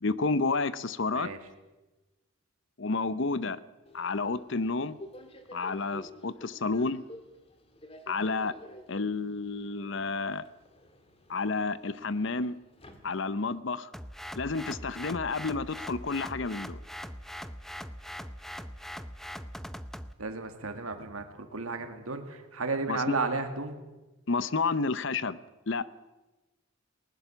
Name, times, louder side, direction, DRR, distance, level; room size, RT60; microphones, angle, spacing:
voice 1, 0.0-1.3 2.8-3.6 3.9-5.0 5.5-7.0 8.1-8.6 8.9-10.4 11.3-12.6 13.0-13.9 14.4-16.8 22.9-23.1 24.3-25.4 25.7-25.8, left 3 dB, 60° left, 16 dB, 0.7 m, -30 dB
Subway metro underground, 3.9-13.6, left 1 dB, 25° left, 1.8 m, -51 dB
sound 1, 13.9-20.1, equal, ahead, 0.6 m, -41 dB
voice 2, 20.2-23.7, right 3 dB, 90° right, 6 dB, 2.2 m, -33 dB
20.0 x 19.5 x 7.0 m, 1.1 s
head